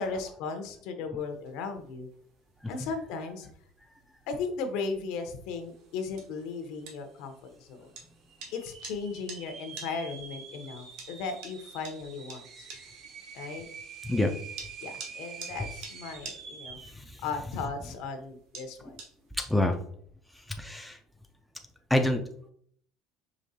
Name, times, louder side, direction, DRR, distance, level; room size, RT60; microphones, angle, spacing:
voice 1, 0.0-2.1 2.7-3.5 4.3-7.9 8.5-12.7 13.3-13.7 14.8-16.8 17.2-19.0, left 4 dB, 65° left, 6 dB, 0.7 m, -36 dB
sound 1, 1.2-19.8, right 4 dB, 70° right, 1.2 m, -50 dB
sound 2, 6.1-6.2 6.4-7.0 7.5-7.6 8.3-17.0, right 6 dB, 40° right, 0.6 m, -46 dB
voice 2, 16.8-17.2 19.5-19.8 20.5-21.0 21.9-22.2, left 1 dB, ahead, 3 dB, 0.3 m, -27 dB
5.1 x 3.0 x 2.7 m, 0.62 s
cardioid pair, 165°, 0 cm